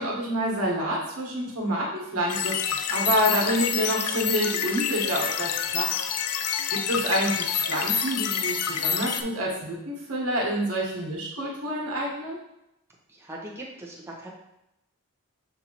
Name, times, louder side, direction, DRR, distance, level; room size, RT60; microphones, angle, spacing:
voice 1, 0.0-2.5 2.9-5.9 6.7-12.4, equal, 75° right, -3 dB, 1.3 m, -27 dB
sound 1, 2.3-9.2, left 8 dB, 90° left, 0.4 m, -28 dB
voice 2, 13.1-14.3, right 1 dB, 10° right, -4 dB, 0.9 m, -40 dB
6.6 x 2.7 x 2.9 m, 0.86 s
head